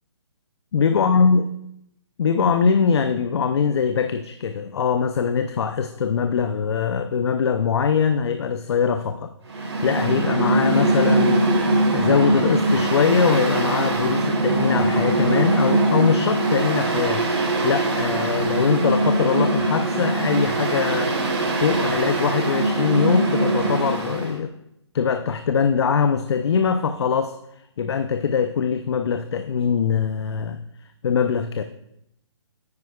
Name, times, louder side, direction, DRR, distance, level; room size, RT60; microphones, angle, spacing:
voice 1, 0.7-1.4 2.2-11.6 11.9-17.3 17.6-24.5 24.9-27.4 27.8-30.6 31.0-31.6, left 6 dB, 60° left, 9 dB, 0.6 m, -22 dB
Mechanical fan, 9.5-24.3, right 2 dB, 75° right, 3.3 m, -22 dB
9.6 x 9.4 x 2.3 m, 0.78 s
hypercardioid pair, 155°, 15 cm